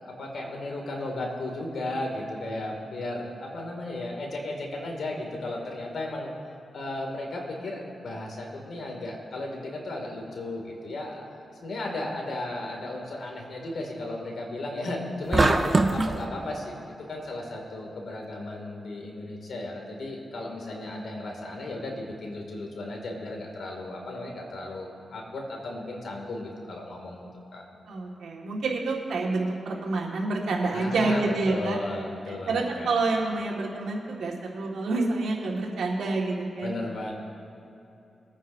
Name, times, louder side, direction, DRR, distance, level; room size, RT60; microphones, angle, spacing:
voice 1, 0.0-6.3 6.7-11.4 11.6-15.6 15.9-16.7 17.1-27.7 30.7-32.9 36.6-37.1, left 2 dB, 70° left, 0 dB, 2.5 m, -35 dB
sound 1, 15.3-16.2, right 3 dB, 30° right, 0.8 m, -21 dB
voice 2, 27.9-31.8 32.3-36.8, right 3 dB, 85° right, -1 dB, 1.9 m, -28 dB
23.0 x 9.3 x 2.7 m, 2.8 s
cardioid pair, 70°, 0 cm